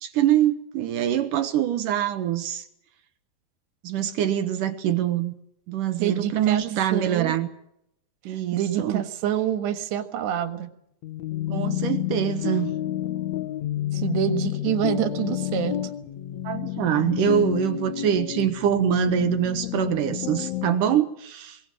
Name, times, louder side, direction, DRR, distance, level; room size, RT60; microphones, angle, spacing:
voice 1, 0.0-2.7 3.8-5.3 5.7-7.5 8.3-9.0 11.5-12.7 16.4-21.6, right 11 dB, 65° right, 9 dB, 2.3 m, -24 dB
voice 2, 6.0-6.6 6.9-7.3 8.3-10.7 13.9-15.8, right 11 dB, 90° right, 9 dB, 3.7 m, -27 dB
sound 1, 11.0-21.0, left 13 dB, 75° left, 1.6 m, -29 dB
22.5 x 18.5 x 7.7 m, 0.76 s
omnidirectional pair, 4.7 m